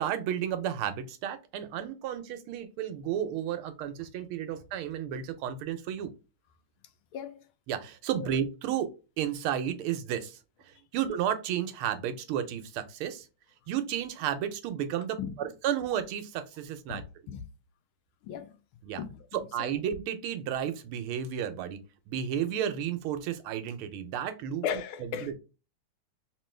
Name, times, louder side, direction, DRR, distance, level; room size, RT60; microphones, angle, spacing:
voice 1, 0.0-6.1 7.7-8.9 9.2-10.4 10.7-13.3 13.7-17.0 18.8-19.0 19.3-21.8 22.1-24.6 25.0-25.4, right 9 dB, 80° right, 1.5 m, -32 dB
voice 2, 7.1-7.4 8.2-8.3 15.2-15.3 16.9-17.4 18.2-18.6 19.0-19.1 19.6-19.7 24.6-25.3, left 8 dB, 80° left, 1.4 m, -36 dB
3.7 x 2.9 x 3.2 m
omnidirectional pair, 2.4 m